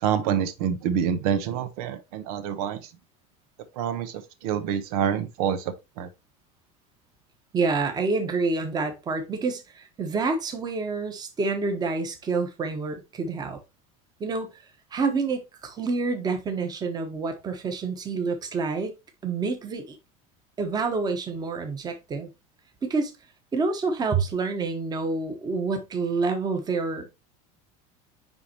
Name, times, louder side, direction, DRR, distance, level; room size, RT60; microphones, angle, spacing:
voice 1, 0.0-2.9 3.8-6.1, right 8 dB, 80° right, 1.0 m, -27 dB
voice 2, 7.5-13.6 14.2-14.6 14.9-18.9 19.2-20.0 20.6-22.3 22.8-23.1 23.5-27.1, right 4 dB, 20° right, 1.2 m, -28 dB
9.5 x 3.5 x 3.0 m
cardioid pair, 150°, 19 cm